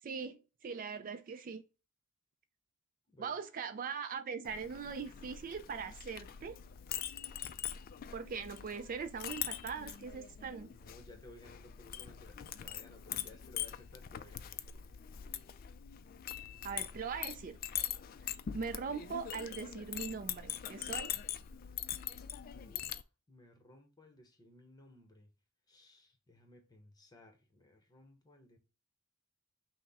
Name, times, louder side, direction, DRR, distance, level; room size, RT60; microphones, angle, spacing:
voice 1, 0.0-1.6 3.2-6.6 8.1-10.7 16.6-17.6 18.5-21.1, right 5 dB, 40° right, 0.3 m, -41 dB
voice 2, 3.1-3.4 10.7-14.9 22.5-25.3 25.7-28.6, left 1 dB, 20° left, 0.9 m, -58 dB
Chink clink, 4.4-23.0, left 10 dB, 40° left, 0.3 m, -43 dB
5.8 x 2.1 x 4.0 m
head